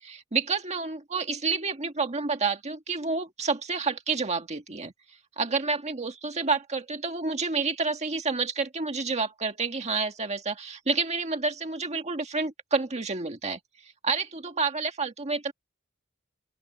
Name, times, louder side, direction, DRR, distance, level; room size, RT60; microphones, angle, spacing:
voice 1, 0.0-4.9 5.4-13.6 14.0-15.5, right 4 dB, 30° right, 1.7 m, -29 dB
open air
head